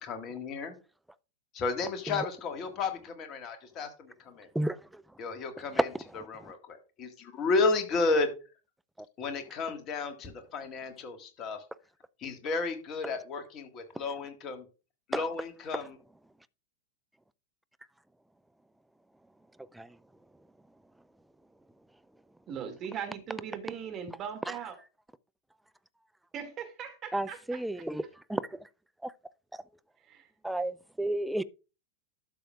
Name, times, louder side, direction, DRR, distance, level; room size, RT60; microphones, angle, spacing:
voice 1, 0.0-0.7 1.5-4.5 5.2-5.9 6.3-8.3 9.2-11.6 12.2-14.6 15.1-16.0, left 3 dB, 35° left, 1.7 m, -32 dB
voice 2, 4.5-5.0 5.7-5.9 6.2-6.5 15.1-15.2 19.7-19.9 27.1-28.0 28.3-28.4 29.0-29.1 30.4-31.4, right 1 dB, 5° right, 0.4 m, -31 dB
voice 3, 22.5-24.8 26.3-27.8 30.0-30.3, right 8 dB, 30° right, 2.2 m, -40 dB
12.0 x 6.9 x 2.4 m
figure-of-eight pair, 90°, 0 cm